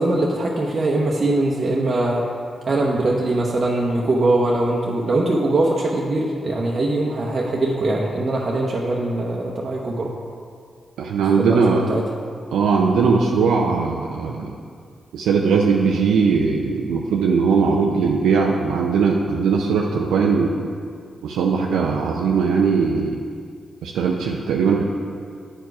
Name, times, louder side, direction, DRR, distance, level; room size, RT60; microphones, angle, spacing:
voice 1, 0.0-2.2 2.7-10.1 11.4-12.0, right 2 dB, 55° right, -3 dB, 0.8 m, -21 dB
voice 2, 11.0-11.8 12.5-14.5 15.1-20.7 21.2-23.2 23.8-24.8, right 5 dB, 85° right, -1 dB, 0.4 m, -19 dB
8.8 x 4.7 x 4.7 m, 2.2 s
supercardioid pair, 40°, 0 cm